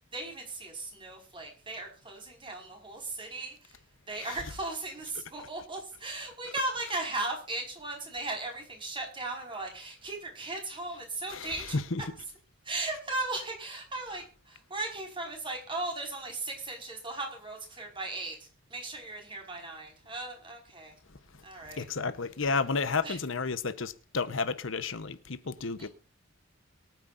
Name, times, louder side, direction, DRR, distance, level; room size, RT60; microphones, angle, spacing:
voice 1, 0.1-3.8 4.1-11.8 12.6-20.9 21.4-21.9 23.0-23.2 25.8-25.9, right 2 dB, 25° right, 5.1 m, -37 dB
voice 2, 11.3-12.0 21.8-25.9, left 4 dB, 70° left, 1.0 m, -31 dB
23.5 x 9.4 x 2.6 m
head